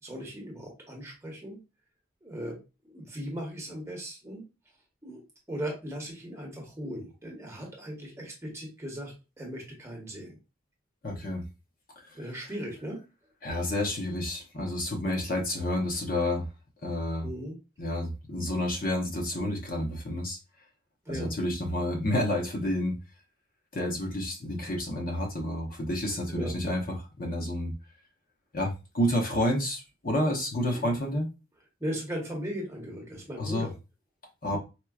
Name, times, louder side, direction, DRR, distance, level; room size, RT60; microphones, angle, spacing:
voice 1, 0.0-1.6 2.2-2.6 2.8-4.4 5.0-5.2 5.5-10.4 12.1-13.0 17.2-17.6 21.0-21.3 26.1-26.5 30.6-30.9 31.8-33.7, equal, 15° right, -2 dB, 0.9 m, -38 dB
voice 2, 11.0-11.4 13.4-16.4 16.8-17.3 17.8-20.4 21.1-22.9 23.7-26.8 27.2-27.7 28.5-31.3 33.4-33.7 34.4-34.6, left 1 dB, 45° left, 0 dB, 0.8 m, -29 dB
4.4 x 2.2 x 2.3 m, 0.28 s
head